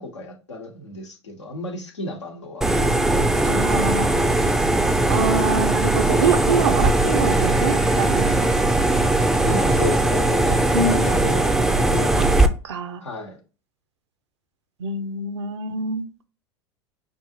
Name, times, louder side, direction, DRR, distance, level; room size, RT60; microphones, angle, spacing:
voice 1, 0.0-2.7 3.3-3.8 9.4-12.2 13.0-13.4, left 2 dB, 90° left, 0.9 m, -33 dB
sound 1, 2.6-12.5, right 2 dB, 5° right, 0.4 m, -19 dB
voice 2, 3.5-4.1 5.1-8.4 10.7-11.1 12.2-12.3 12.6-13.0 14.8-16.0, right 4 dB, 80° right, 0.6 m, -25 dB
5.4 x 2.5 x 2.8 m
hypercardioid pair, 85°, 14 cm